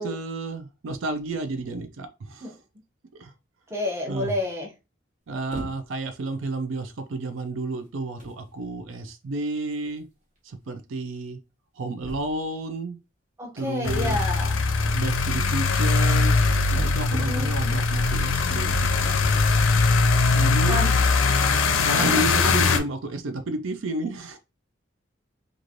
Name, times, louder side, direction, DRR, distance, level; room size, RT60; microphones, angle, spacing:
voice 1, 0.0-2.5 3.2-3.3 4.1-4.4 5.3-10.1 10.4-11.4 11.8-13.0 13.5-14.4 14.9-19.1 20.3-21.2 21.8-24.4, right 2 dB, 75° right, 0.4 m, -31 dB
voice 2, 3.7-4.7 13.4-14.6 17.1-17.7 20.7-20.9 21.7-22.2, left 1 dB, 15° right, 0.7 m, -30 dB
sound 1, 5.5-6.1 6.9-7.0 7.8-7.9 8.2-8.5 9.7-9.8 10.0-10.1 10.4-10.5 12.0-12.5 14.8-15.5 16.8-17.4 18.6-19.1, right 1 dB, 35° right, 1.0 m, -40 dB
sound 2, 13.8-22.8, left 4 dB, 80° left, 0.5 m, -21 dB
3.1 x 2.5 x 2.5 m
head